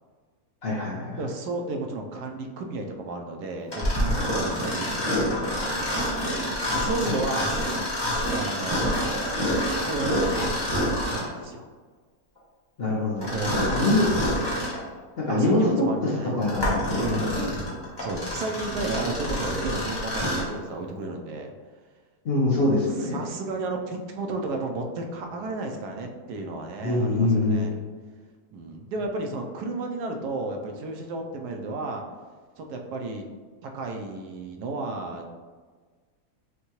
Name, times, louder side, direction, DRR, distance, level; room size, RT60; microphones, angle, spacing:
voice 1, 0.6-1.2 7.0-7.1 12.8-14.0 15.2-15.6 16.4-17.5 22.2-23.2 26.8-27.8, left 2 dB, 50° left, -5 dB, 0.8 m, -24 dB
voice 2, 1.2-7.6 8.3-11.7 13.2-14.1 15.3-16.3 17.0-17.3 18.0-21.5 23.0-27.8 28.5-32.0 32.6-33.2 33.6-35.3, right 2 dB, 80° right, 3 dB, 1.1 m, -33 dB
Mechanisms, 3.7-11.4 13.2-14.8 15.4-15.5 16.2-20.5, equal, 15° left, 1.2 m, -27 dB
6.3 x 2.2 x 3.0 m, 1.5 s
omnidirectional pair, 1.7 m